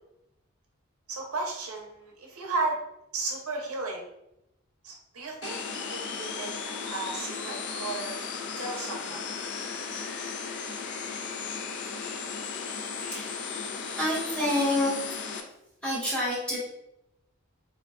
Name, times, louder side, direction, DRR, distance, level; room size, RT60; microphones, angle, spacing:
voice 1, 1.1-2.8 3.1-4.1 4.8-8.2 8.6-9.2, right 3 dB, 85° right, 0 dB, 0.6 m, -34 dB
sound 1, 5.4-15.4, left 5 dB, 55° left, 0.3 m, -35 dB
voice 2, 13.0-13.5 13.9-14.9 15.8-16.6, left 1 dB, 5° left, -7 dB, 0.9 m, -28 dB
3.4 x 2.2 x 2.3 m, 0.82 s
head